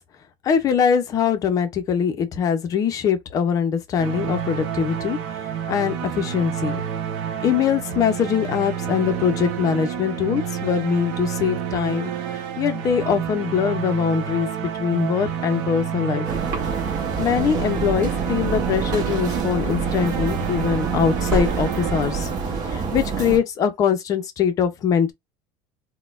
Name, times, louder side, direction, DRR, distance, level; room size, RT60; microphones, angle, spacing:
voice 1, 0.4-6.8 7.4-12.1 12.6-16.3 17.2-22.3 22.7-25.1, left 7 dB, 30° left, 0.6 m, -22 dB
sound 1, 4.0-22.9, right 8 dB, 65° right, 0.8 m, -29 dB
sound 2, 16.2-23.4, right 5 dB, 35° right, 1.0 m, -27 dB
sound 3, 18.3-19.2 20.9-22.2, right 3 dB, 20° right, 1.3 m, -31 dB
4.0 x 2.1 x 2.4 m
cardioid pair, 165°, 11 cm